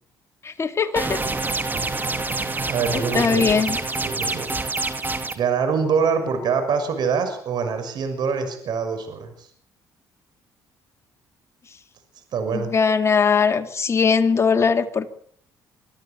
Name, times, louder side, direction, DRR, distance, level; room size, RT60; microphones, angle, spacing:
voice 1, 0.4-1.2 2.9-3.8 12.5-15.1, left 5 dB, 35° left, 6 dB, 2.6 m, -20 dB
sound 1, 1.0-5.3, right 3 dB, 25° right, 2.6 m, -26 dB
voice 2, 2.7-3.7 4.0-4.6 5.3-9.5 12.3-12.7, right 6 dB, 65° right, 8 dB, 6.1 m, -24 dB
25.0 x 13.5 x 8.2 m, 0.64 s
supercardioid pair, 80°, 8 cm